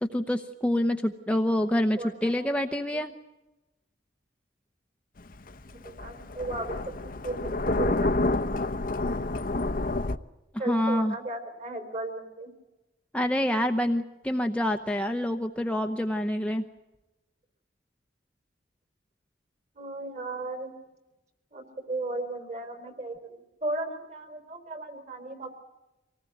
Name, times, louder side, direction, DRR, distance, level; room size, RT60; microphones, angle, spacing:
voice 1, 0.0-3.1 10.7-11.2 13.1-16.6, left 1 dB, 5° left, 4 dB, 0.8 m, -27 dB
voice 2, 2.0-2.5 2.9-3.0 5.6-6.8 7.2-8.2 10.6-12.5 19.8-20.7 21.5-25.5, right 2 dB, 40° right, 7 dB, 4.1 m, -36 dB
Thunder, 5.2-10.2, left 2 dB, 50° left, 0.8 m, -28 dB
25.0 x 19.0 x 9.2 m, 1.0 s
head